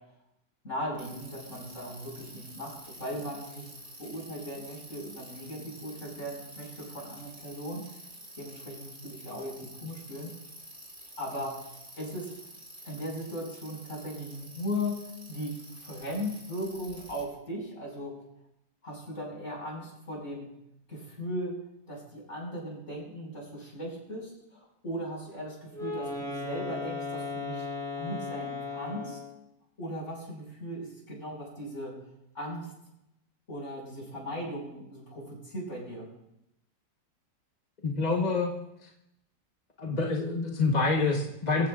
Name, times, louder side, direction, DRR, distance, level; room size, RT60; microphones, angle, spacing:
voice 1, 0.6-3.7 4.0-7.8 8.4-10.3 11.2-11.6 12.0-12.3 12.8-18.2 18.8-20.5 20.9-21.5 21.9-27.7 27.9-29.2 29.8-32.0 32.3-32.7 33.5-36.1, equal, 45° left, -2 dB, 6.0 m, -38 dB
Bicycle, 1.0-17.2, right 1 dB, 40° right, 5.0 m, -49 dB
Wind instrument woodwind instrument, 25.7-29.4, left 3 dB, ahead, 4.8 m, -36 dB
voice 2, 37.8-38.5 38.8-38.9 39.8-41.7, left 3 dB, 30° left, 0 dB, 1.1 m, -27 dB
23.5 x 15.5 x 2.4 m, 0.85 s
omnidirectional pair, 1.8 m